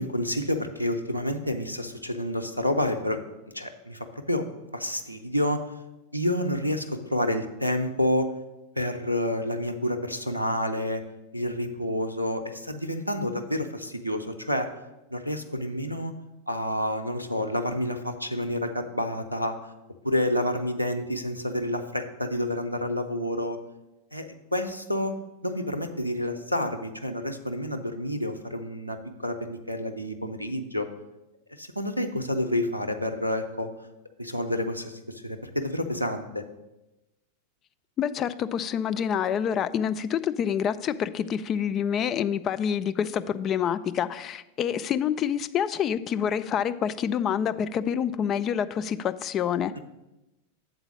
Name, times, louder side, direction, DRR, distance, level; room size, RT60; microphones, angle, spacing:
voice 1, 0.0-3.2 3.5-4.4 4.7-5.6 6.1-8.3 8.8-11.0 11.3-14.7 15.1-16.1 16.5-19.6 20.0-23.6 24.1-25.1 25.4-29.0 29.2-30.9 31.6-33.7 34.2-34.9 35.2-36.4, left 1 dB, 90° right, 7 dB, 0.5 m, -29 dB
voice 2, 38.0-49.7, left 8 dB, 30° left, 11 dB, 0.3 m, -27 dB
8.0 x 3.9 x 6.1 m, 0.99 s
figure-of-eight pair, 90°, 0 cm